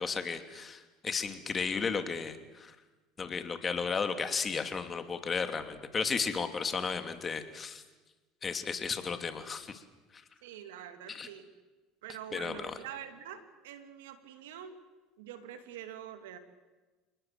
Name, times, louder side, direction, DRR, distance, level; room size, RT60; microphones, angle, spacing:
voice 1, 0.0-2.7 3.2-7.8 8.4-9.8 11.1-11.3 12.3-12.8, left 5 dB, 30° left, 8 dB, 2.7 m, -34 dB
voice 2, 10.4-11.5 12.0-14.8 15.2-16.4, right 10 dB, 85° right, 8 dB, 2.6 m, -45 dB
30.0 x 19.5 x 7.7 m, 1.2 s
supercardioid pair, 95°, 0 cm